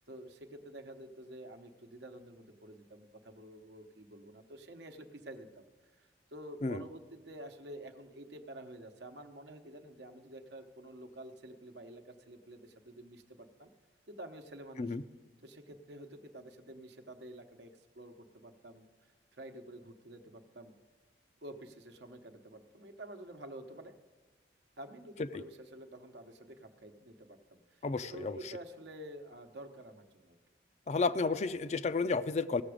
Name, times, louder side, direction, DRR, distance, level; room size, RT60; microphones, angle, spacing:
voice 1, 0.1-5.7 5.9-13.7 14.1-15.0 15.4-20.7 21.4-24.0 24.8-30.4, right 1 dB, 80° right, 6 dB, 0.9 m, -49 dB
voice 2, 27.8-28.4 30.9-32.6, left 4 dB, 40° left, 13 dB, 0.4 m, -32 dB
16.5 x 6.9 x 5.0 m, 1.4 s
head